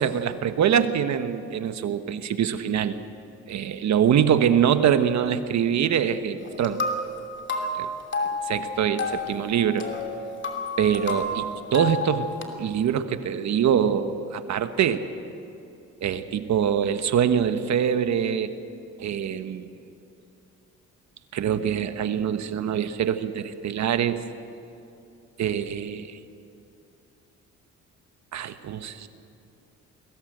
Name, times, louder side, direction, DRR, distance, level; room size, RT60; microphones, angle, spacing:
voice 1, 0.0-3.0 3.5-6.8 7.7-7.9 8.5-9.9 10.8-12.3 12.5-15.0 16.0-18.5 19.0-19.7 21.3-24.2 25.4-26.2 28.3-29.1, right 8 dB, 65° right, 10 dB, 1.3 m, -24 dB
sound 1, 6.4-12.4, left 2 dB, 40° left, 2.9 m, -31 dB
22.0 x 17.5 x 7.9 m, 2.8 s
cardioid pair, 90°, 30 cm